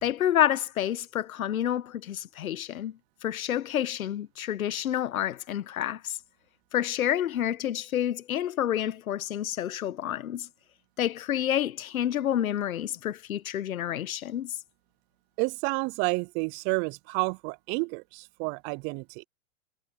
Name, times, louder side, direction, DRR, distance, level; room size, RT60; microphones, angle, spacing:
voice 1, 0.0-6.2 6.7-10.5 11.0-14.5, left 11 dB, 80° left, 1.3 m, -29 dB
voice 2, 15.4-19.2, right 29 dB, 25° right, 0.4 m, -30 dB
hypercardioid pair, 115°, 41 cm